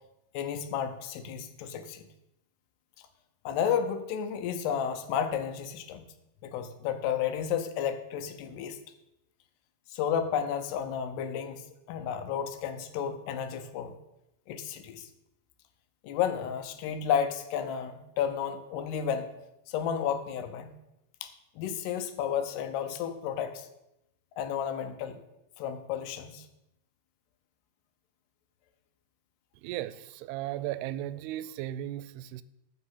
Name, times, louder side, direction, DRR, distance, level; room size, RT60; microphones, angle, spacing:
voice 1, 0.3-2.1 3.5-6.1 6.4-8.8 9.9-14.0 14.5-15.1 16.0-19.3 19.7-20.7 21.2-23.7 24.4-25.2 25.6-26.5, left 8 dB, 80° left, 9 dB, 2.8 m, -32 dB
voice 2, 29.6-32.4, right 13 dB, 85° right, 16 dB, 2.5 m, -36 dB
14.5 x 6.1 x 5.6 m, 0.87 s
omnidirectional pair, 4.7 m